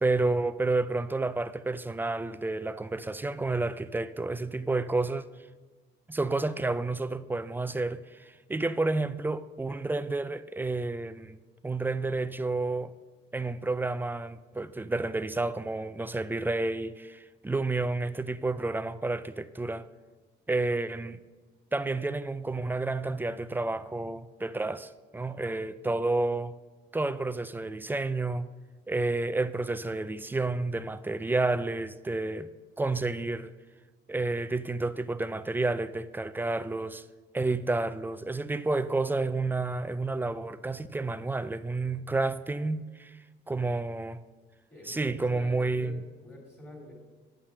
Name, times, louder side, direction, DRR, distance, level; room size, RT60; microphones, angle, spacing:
voice 1, 0.0-5.3 6.1-11.4 11.6-12.9 13.3-19.9 20.5-21.2 21.7-26.6 26.9-28.5 28.9-32.5 32.8-33.5 34.1-37.0 37.3-43.2 43.5-44.2 44.8-46.0, right 2 dB, 10° right, 0.4 m, -30 dB
voice 2, 44.7-46.9, left 1 dB, 10° left, 3.3 m, -46 dB
9.8 x 5.8 x 6.5 m
cardioid pair, 90°, 20 cm